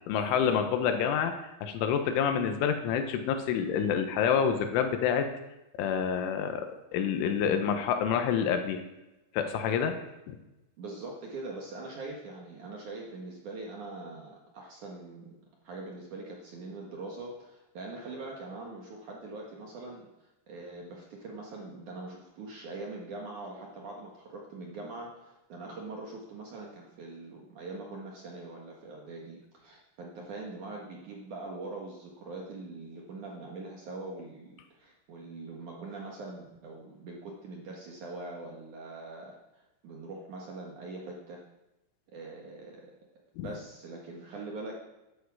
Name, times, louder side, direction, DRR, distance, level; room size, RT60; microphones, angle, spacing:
voice 1, 0.1-1.3 1.6-5.3 5.8-8.8 9.3-10.0 10.3-10.4 43.4-43.5, left 7 dB, 85° left, 7 dB, 3.6 m, -28 dB
voice 2, 10.8-41.4 42.1-42.9 43.4-44.8, right 2 dB, 60° right, -1 dB, 2.2 m, -43 dB
13.0 x 11.5 x 4.9 m, 0.98 s
omnidirectional pair, 5.5 m